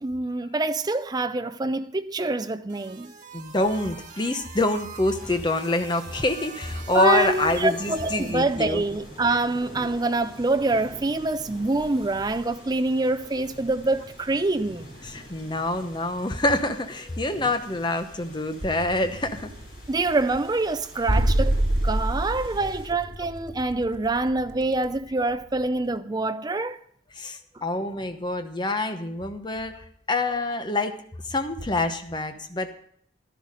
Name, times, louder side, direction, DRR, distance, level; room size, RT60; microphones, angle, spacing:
voice 1, 0.0-3.1 6.9-14.9 19.9-21.5 21.8-26.8, right 2 dB, 20° right, 0.5 m, -25 dB
sound 1, 2.7-8.4, right 6 dB, 45° right, 1.6 m, -43 dB
voice 2, 3.3-8.8 15.0-19.5 27.2-31.0 31.3-32.7, left 2 dB, 25° left, 0.9 m, -26 dB
sound 2, 5.1-22.9, equal, 55° left, 6.1 m, -47 dB
sound 3, 6.8-14.4 14.6-26.0, right 1 dB, 70° right, 1.5 m, -32 dB
12.5 x 10.5 x 5.1 m
head